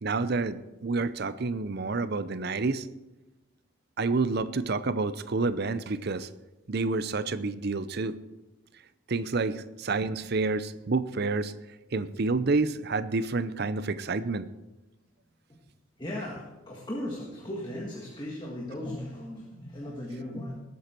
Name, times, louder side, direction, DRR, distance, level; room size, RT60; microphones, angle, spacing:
voice 1, 0.0-2.9 4.0-6.3 6.7-8.2 9.1-11.5 11.9-14.5, right 3 dB, 50° right, 14 dB, 0.6 m, -29 dB
voice 2, 16.0-20.6, left 1 dB, 20° left, -2 dB, 1.7 m, -37 dB
19.5 x 8.4 x 4.5 m, 1.0 s
head